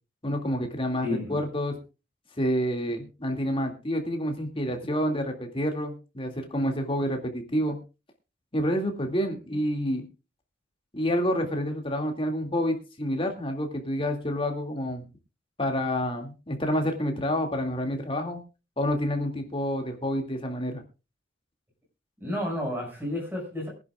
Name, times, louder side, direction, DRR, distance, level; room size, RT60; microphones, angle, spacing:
voice 1, 0.2-1.8 2.4-7.8 8.5-10.0 10.9-15.1 15.6-18.4 18.8-20.8, equal, 30° left, 3 dB, 2.3 m, -28 dB
voice 2, 1.0-1.4 4.6-4.7 22.2-23.7, left 1 dB, 10° right, 0 dB, 5.9 m, -31 dB
23.0 x 10.5 x 2.4 m, 0.30 s
head